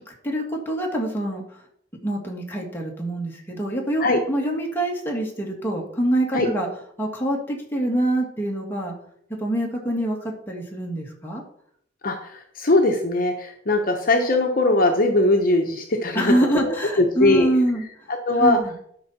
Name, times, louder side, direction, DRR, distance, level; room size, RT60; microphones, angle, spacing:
voice 1, 0.2-1.6 2.0-6.7 7.0-8.9 9.4-11.4 16.1-18.1 18.4-18.7, right 1 dB, 10° left, -1 dB, 2.1 m, -25 dB
voice 2, 12.0-17.5 18.1-18.6, left 2 dB, 50° left, 3 dB, 1.0 m, -20 dB
12.0 x 5.4 x 4.3 m, 0.66 s
head